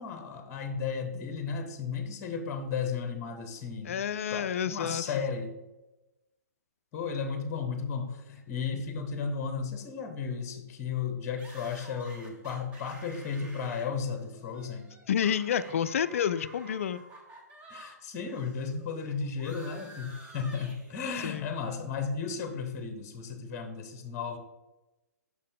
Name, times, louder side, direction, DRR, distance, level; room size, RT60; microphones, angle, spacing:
voice 1, 0.0-4.0 4.3-5.5 6.9-14.9 15.7-15.8 16.3-16.5 17.7-24.4, left 5 dB, 25° left, 6 dB, 0.9 m, -34 dB
voice 2, 3.9-5.2 15.1-17.0 21.2-21.5, left 8 dB, 50° left, 15 dB, 0.3 m, -29 dB
sound 1, 11.4-17.9 18.2-21.4, right 1 dB, 15° right, 1.0 m, -51 dB
6.4 x 5.5 x 3.5 m, 1.0 s
figure-of-eight pair, 120°, 9 cm